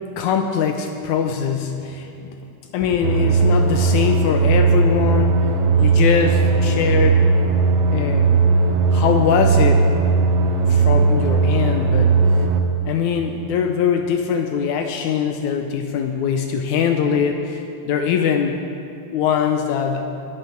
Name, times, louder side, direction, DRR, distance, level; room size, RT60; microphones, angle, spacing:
voice 1, 0.2-2.4 2.7-5.5 5.8-7.2 7.9-8.4 8.9-9.9 10.7-12.1 12.9-18.6 19.1-20.1, left 7 dB, 80° left, 5 dB, 2.0 m, -22 dB
sound 1, 3.0-12.6, right 4 dB, 75° right, 1.4 m, -17 dB
22.5 x 8.2 x 4.5 m, 2.6 s
omnidirectional pair, 3.5 m